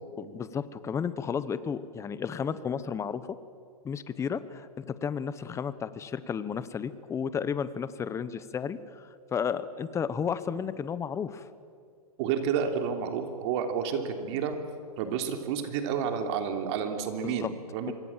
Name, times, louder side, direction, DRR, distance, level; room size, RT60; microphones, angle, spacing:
voice 1, 0.2-3.3 3.8-11.4 17.2-17.5, left 7 dB, 15° left, 15 dB, 1.0 m, -33 dB
voice 2, 12.2-14.6 15.0-17.9, right 7 dB, 45° right, 5 dB, 3.4 m, -30 dB
26.0 x 23.0 x 7.4 m, 2.2 s
hypercardioid pair, 135°, 19 cm